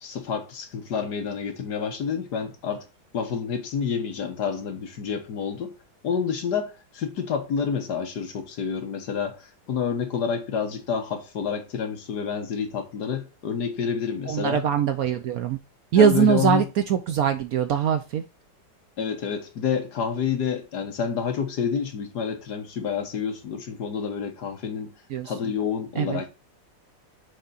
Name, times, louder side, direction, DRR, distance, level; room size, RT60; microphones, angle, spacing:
voice 1, 0.0-2.8 3.1-5.7 6.0-14.7 16.0-16.7 19.0-24.9 25.2-26.3, left 6 dB, 65° left, 1.7 m, -28 dB
voice 2, 14.3-15.6 15.9-16.6 16.9-18.2 25.1-25.3 26.0-26.2, right 8 dB, 70° right, 0.9 m, -22 dB
6.6 x 3.6 x 4.0 m
omnidirectional pair, 1.9 m